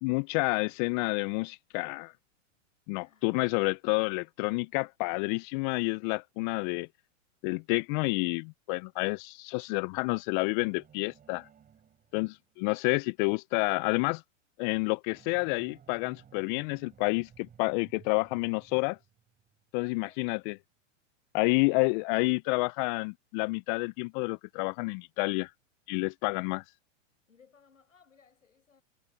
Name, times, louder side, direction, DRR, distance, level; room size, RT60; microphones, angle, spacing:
voice 1, 0.0-2.1 2.9-6.9 7.4-11.5 12.1-14.2 14.6-19.0 19.7-20.5 21.3-25.5 25.9-26.6, left 28 dB, 40° left, 0.7 m, -29 dB
voice 2, 2.9-3.4 19.8-20.2 27.3-28.8, left 6 dB, 90° left, 8.0 m, -62 dB
sound 1, 10.5-12.8 15.1-20.1, right 8 dB, 20° right, 7.3 m, -58 dB
hypercardioid pair, 110°, 38 cm